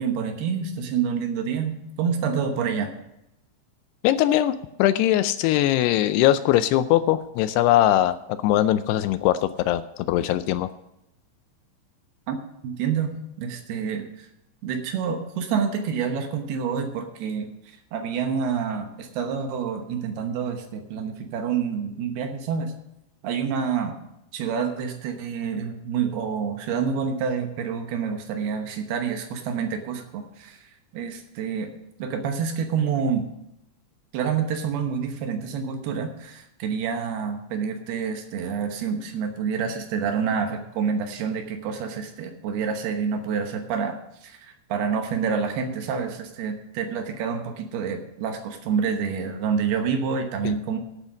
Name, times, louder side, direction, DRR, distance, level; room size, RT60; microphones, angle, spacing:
voice 1, 0.0-2.9 12.3-12.4 12.6-14.3 14.6-22.7 23.2-24.0 24.3-31.7 32.0-33.3 34.1-50.8, right 6 dB, 70° right, 5 dB, 2.8 m, -28 dB
voice 2, 4.0-10.7 50.5-50.6, left 13 dB, 85° left, 13 dB, 2.4 m, -21 dB
12.0 x 8.3 x 6.3 m, 0.85 s
omnidirectional pair, 5.1 m